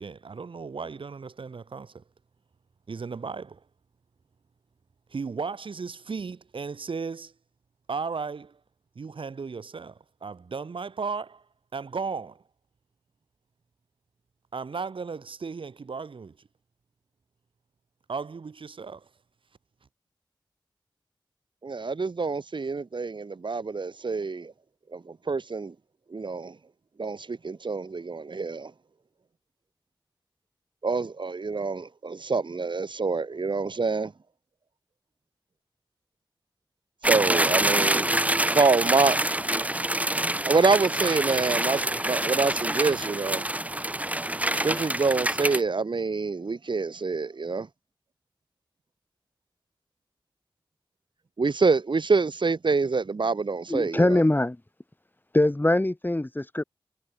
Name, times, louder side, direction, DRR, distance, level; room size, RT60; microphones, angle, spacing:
voice 1, 0.0-2.0 2.9-3.6 5.1-7.3 7.9-8.6 9.0-12.4 14.5-16.5 18.1-19.1, right 5 dB, 85° right, 2.4 m, -35 dB
voice 2, 21.6-24.5 24.9-25.7 26.1-26.6 27.0-28.7 30.8-34.1 37.0-38.1 38.5-39.2 39.6-39.8 40.5-43.4 44.5-47.7 51.4-54.2, right 4 dB, 65° right, 2.8 m, -26 dB
sound 1, 37.0-45.6, right 1 dB, 15° right, 2.1 m, -26 dB
voice 3, 53.7-54.6 55.3-56.6, left 1 dB, 20° left, 4.3 m, -22 dB
wide cardioid pair, 65°, 9 cm